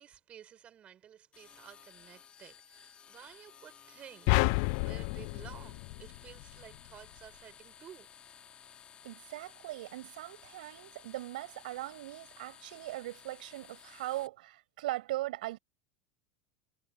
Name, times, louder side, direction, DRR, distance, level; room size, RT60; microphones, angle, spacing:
voice 1, 0.0-8.1, right 10 dB, 25° right, 7.5 m, -53 dB
sound 1, 1.3-14.3, left 8 dB, 25° left, 3.5 m, -56 dB
sound 2, 4.3-6.7, left 28 dB, 50° left, 0.4 m, -30 dB
voice 2, 9.0-15.6, right 17 dB, 85° right, 6.9 m, -39 dB
supercardioid pair, 165°, 5 cm